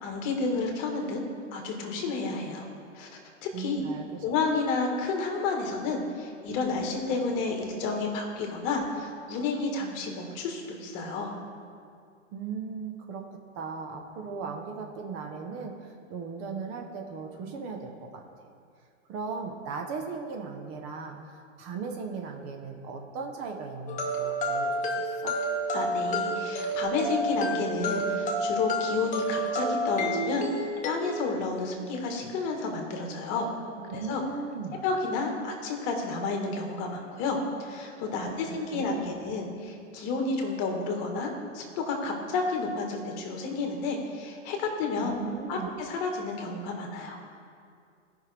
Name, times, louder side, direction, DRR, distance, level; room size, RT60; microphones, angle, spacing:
voice 1, 0.0-1.2 1.5-2.7 2.9-3.8 4.2-11.3 25.7-33.5 33.9-34.2 34.8-45.1 45.5-47.2, left 3 dB, 40° left, 2 dB, 1.7 m, -31 dB
voice 2, 3.5-4.2 12.3-18.5 19.1-25.4 33.8-34.8 38.2-39.2 45.0-45.7, right 5 dB, 35° right, 3 dB, 1.0 m, -38 dB
sound 1, 23.9-30.9, right 1 dB, 20° left, 1.3 m, -29 dB
16.0 x 5.8 x 3.4 m, 2.3 s
hypercardioid pair, 125°, 39 cm